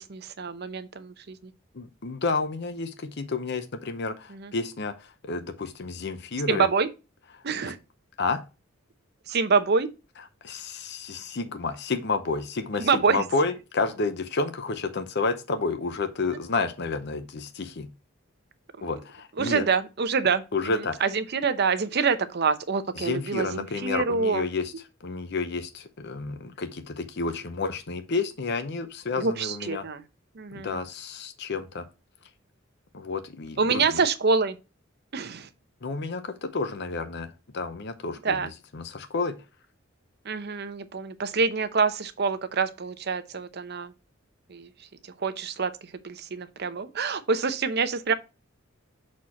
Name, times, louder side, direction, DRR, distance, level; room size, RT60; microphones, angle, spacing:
voice 1, 0.0-1.5 4.3-4.5 6.5-6.9 7.4-7.8 9.3-9.9 12.8-13.2 19.4-24.4 29.2-30.0 30.4-30.8 33.6-34.6 35.1-35.5 38.2-38.5 40.3-43.9 44.5-44.7 45.2-45.7 46.0-48.1, right 5 dB, 55° right, 0.7 m, -26 dB
voice 2, 1.7-6.7 7.6-7.7 8.2-8.4 10.4-17.9 18.8-19.6 20.5-20.9 23.0-24.7 25.0-29.8 30.5-31.8 32.9-34.0 35.8-39.3, left 3 dB, 60° left, 0.7 m, -30 dB
6.3 x 4.3 x 4.2 m
head